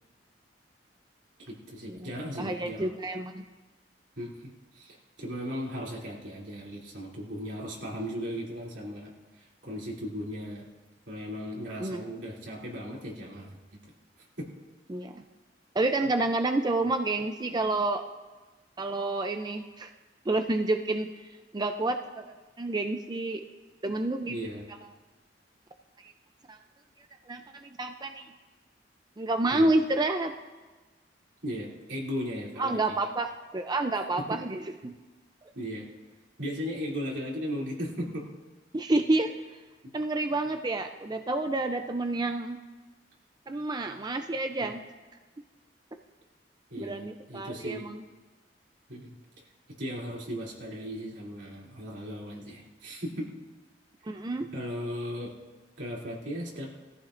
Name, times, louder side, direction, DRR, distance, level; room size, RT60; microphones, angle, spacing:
voice 1, 1.4-2.9 4.2-10.7 11.1-13.9 14.4-14.5 24.3-24.7 29.5-29.7 31.4-33.0 34.2-34.4 34.8-34.9 35.5-35.9 36.4-38.3 39.8-39.9 44.6-44.7 46.7-47.9 48.9-49.2 49.8-53.3 54.5-55.3 55.8-56.7, equal, 80° right, -4 dB, 3.0 m, -37 dB
voice 2, 2.4-3.4 11.8-12.0 14.9-15.2 15.7-18.0 18.8-19.9 20.3-21.1 21.5-23.4 23.8-24.4 26.5-26.6 27.3-28.3 29.2-30.3 32.6-34.9 38.7-39.3 39.9-42.6 43.5-44.8 46.8-48.0 54.1-54.5, right 2 dB, 25° right, 6 dB, 0.5 m, -29 dB
20.5 x 14.0 x 2.6 m, 1.2 s
head